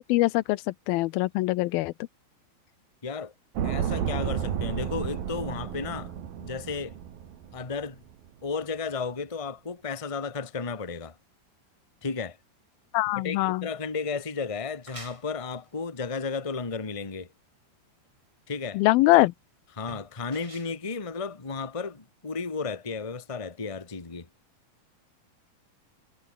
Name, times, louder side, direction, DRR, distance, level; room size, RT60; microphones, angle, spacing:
voice 1, 0.1-1.9 12.9-13.7 18.7-19.3, left 19 dB, 85° left, 2.5 m, -23 dB
voice 2, 3.0-3.3 3.6-6.1 6.4-7.0 7.5-8.0 8.4-11.2 12.0-12.4 13.1-17.3 18.5-18.8 19.1-19.2 19.8-24.3, left 4 dB, 15° left, 1.2 m, -33 dB
sound 1, 3.6-7.8 8.1-8.2, right 9 dB, 75° right, 4.3 m, -32 dB
sound 2, 14.8-22.0, right 1 dB, 10° right, 3.2 m, -51 dB
omnidirectional pair, 4.2 m